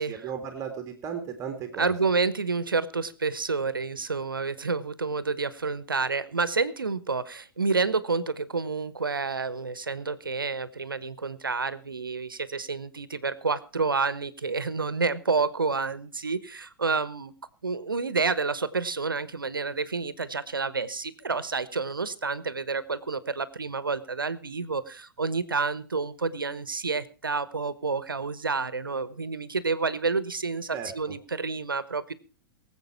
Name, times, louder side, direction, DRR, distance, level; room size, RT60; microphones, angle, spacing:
voice 1, 0.0-1.9 30.7-31.1, right 7 dB, 25° right, 6 dB, 2.1 m, -36 dB
voice 2, 1.8-17.3 17.6-32.1, right 4 dB, 80° right, 16 dB, 1.2 m, -29 dB
23.5 x 8.0 x 4.4 m, 0.36 s
figure-of-eight pair, 105°, 11 cm